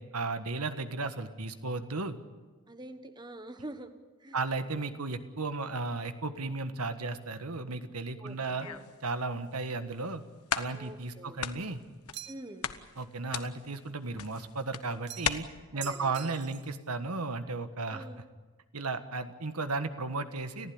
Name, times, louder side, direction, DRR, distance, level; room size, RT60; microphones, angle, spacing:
voice 1, 0.0-2.2 4.3-8.7 9.0-10.2 10.5-11.8 13.0-15.4 15.7-18.0 18.7-20.7, right 3 dB, 90° right, 9 dB, 1.5 m, -34 dB
voice 2, 2.7-3.9 4.2-4.4 8.2-8.8 10.7-11.4 12.3-12.7 15.7-16.3 17.9-18.2, right 1 dB, 20° right, 9 dB, 1.3 m, -45 dB
sound 1, 8.3-9.0 9.6-9.7 10.1-10.2 10.5-11.1 11.4-12.4 12.6-15.3, left 8 dB, 80° left, 1.1 m, -36 dB
sound 2, 12.1-12.6 15.1-15.5 15.8-16.8, right 13 dB, 50° right, 0.8 m, -44 dB
30.0 x 15.0 x 8.7 m, 1.3 s
head